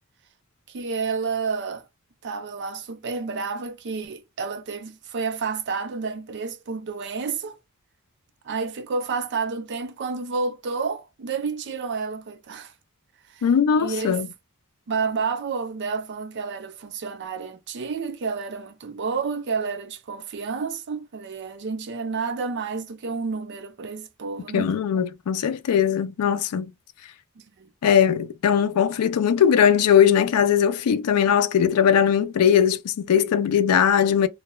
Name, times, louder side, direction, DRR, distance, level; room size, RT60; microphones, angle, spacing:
voice 1, 0.7-1.8 2.2-7.6 8.4-12.7 13.3-13.5 13.7-14.2 14.9-24.7 27.4-27.7, right 5 dB, 50° right, 0.4 m, -30 dB
voice 2, 13.4-14.3 24.5-26.7 27.8-34.3, left 8 dB, 80° left, 0.4 m, -20 dB
2.2 x 2.1 x 2.9 m
head